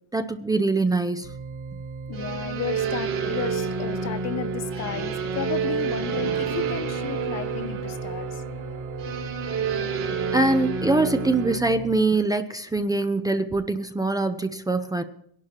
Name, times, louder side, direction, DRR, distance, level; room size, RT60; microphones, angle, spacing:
voice 1, 0.1-1.3 10.3-15.0, right 2 dB, 10° right, 0.5 m, -23 dB
sound 1, 1.2-12.0, right 4 dB, 80° right, 2.3 m, -37 dB
voice 2, 2.1-8.4, left 10 dB, 45° left, 0.8 m, -33 dB
sound 2, 2.1-11.6, right 5 dB, 60° right, 2.8 m, -29 dB
22.0 x 11.5 x 3.0 m
cardioid pair, 140°, 38 cm